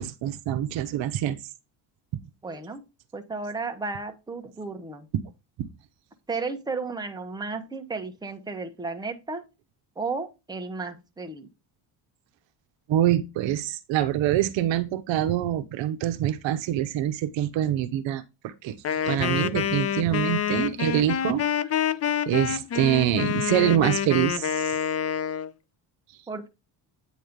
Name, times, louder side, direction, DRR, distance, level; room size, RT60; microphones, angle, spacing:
voice 1, 0.0-1.4 5.6-5.7 12.9-21.4 21.8-21.9 22.3-24.7, right 12 dB, 70° right, 0.8 m, -25 dB
voice 2, 2.4-2.8 3.1-5.1 6.3-9.4 10.0-11.5 26.3-26.5, right 4 dB, 10° right, 0.9 m, -33 dB
Wind instrument woodwind instrument, 18.8-25.5, left 9 dB, 35° left, 0.5 m, -27 dB
9.3 x 3.1 x 5.1 m
cardioid pair, 110°, 47 cm